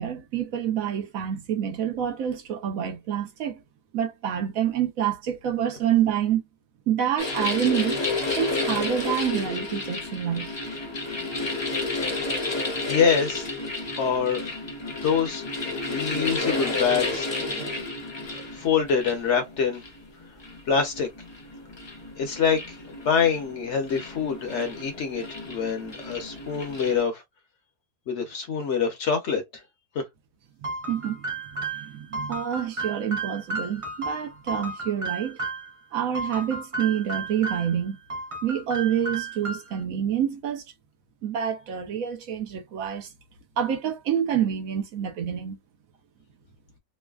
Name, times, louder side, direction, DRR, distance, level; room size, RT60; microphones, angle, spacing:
voice 1, 0.0-3.6 3.9-6.4 6.9-8.0 8.4-10.5 17.5-17.8 30.6-31.3 31.6-35.4 35.9-38.0 38.4-40.6 41.2-43.1 43.6-45.6, right 9 dB, 70° right, 1.1 m, -27 dB
sound 1, 7.2-27.0, left 3 dB, 40° left, 0.4 m, -31 dB
voice 2, 12.9-13.5 14.0-14.5 15.0-17.3 18.3-19.8 20.7-21.1 22.2-27.2 28.1-29.4 29.9-30.0, left 6 dB, 55° left, 0.9 m, -25 dB
sound 2, 30.6-35.7 36.1-37.8 38.1-39.8, right 3 dB, 50° right, 0.3 m, -33 dB
3.1 x 2.1 x 2.3 m
omnidirectional pair, 1.6 m